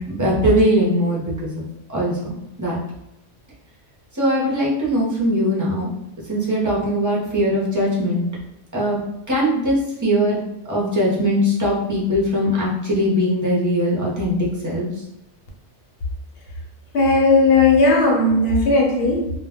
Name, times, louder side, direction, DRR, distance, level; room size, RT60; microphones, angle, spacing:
voice 1, 0.1-1.6 1.9-2.3 2.6-2.8 4.1-5.9 6.3-8.3 8.7-9.0 9.3-10.4 10.7-14.9, equal, 20° right, -5 dB, 0.5 m, -20 dB
voice 2, 16.9-19.3, left 3 dB, 60° left, 0 dB, 0.9 m, -16 dB
2.2 x 2.1 x 3.4 m, 0.85 s
omnidirectional pair, 1.2 m